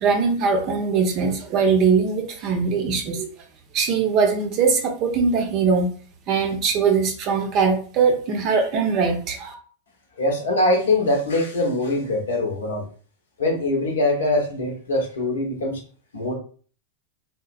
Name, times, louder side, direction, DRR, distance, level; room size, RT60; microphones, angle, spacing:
voice 1, 0.0-3.3 3.7-5.9 6.3-9.5, right 5 dB, 40° right, 3 dB, 0.6 m, -21 dB
voice 2, 10.2-12.8 13.4-15.8 16.1-16.3, left 2 dB, 65° left, 1 dB, 0.7 m, -22 dB
3.0 x 2.1 x 2.4 m, 0.43 s
figure-of-eight pair, 90°, 0 cm